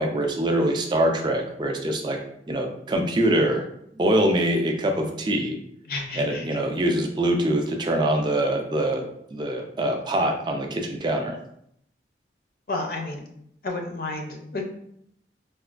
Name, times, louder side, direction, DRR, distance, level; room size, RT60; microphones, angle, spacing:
voice 1, 0.0-2.2 2.5-3.7 4.0-5.6 6.2-9.0 9.3-11.4, right 1 dB, 25° right, 3 dB, 0.4 m, -24 dB
voice 2, 5.9-6.6 12.7-13.3 13.6-14.6, left 2 dB, 55° left, 2 dB, 0.4 m, -31 dB
4.2 x 2.2 x 2.4 m, 0.72 s
head